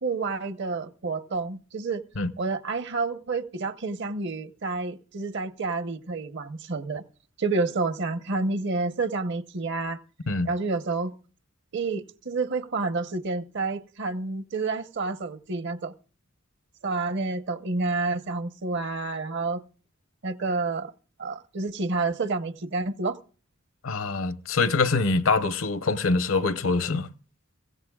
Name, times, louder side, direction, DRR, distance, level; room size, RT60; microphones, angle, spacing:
voice 1, 0.0-2.0 2.4-7.0 7.4-10.0 10.4-11.1 11.7-15.9 16.8-19.6 20.2-20.9 21.2-23.2, right 3 dB, 60° right, 0.9 m, -29 dB
voice 2, 23.8-27.1, left 3 dB, 70° left, 0.8 m, -24 dB
22.5 x 16.0 x 2.4 m
head